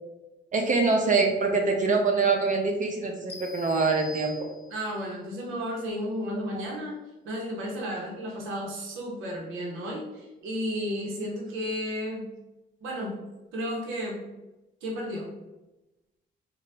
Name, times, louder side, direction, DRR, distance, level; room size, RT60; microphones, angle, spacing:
voice 1, 0.5-4.3, right 4 dB, 40° right, 2 dB, 0.5 m, -24 dB
sound 1, 3.3-5.0, left 1 dB, 55° left, 0.6 m, -44 dB
voice 2, 4.7-7.0 7.2-12.3 12.8-13.1 13.5-14.3 14.8-15.3, equal, 90° right, -2 dB, 0.7 m, -33 dB
2.7 x 2.1 x 3.2 m, 1.0 s
cardioid pair, 90°, 20 cm